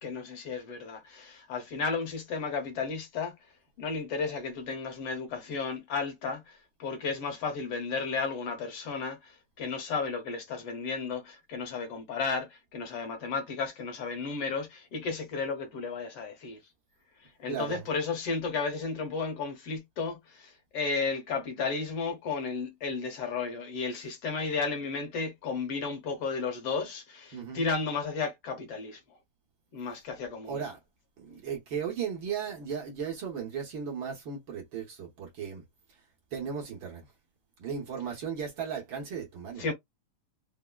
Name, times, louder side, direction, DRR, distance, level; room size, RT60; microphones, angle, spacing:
voice 1, 0.0-3.3 3.8-16.6 17.4-29.0 29.7-30.6 39.6-39.7, left 4 dB, 65° left, 1.6 m, -33 dB
voice 2, 17.5-17.9 27.3-27.6 30.4-30.8 31.2-35.6 36.3-37.1 37.6-39.6, right 7 dB, 70° right, 1.2 m, -36 dB
4.7 x 2.0 x 2.3 m
omnidirectional pair, 3.4 m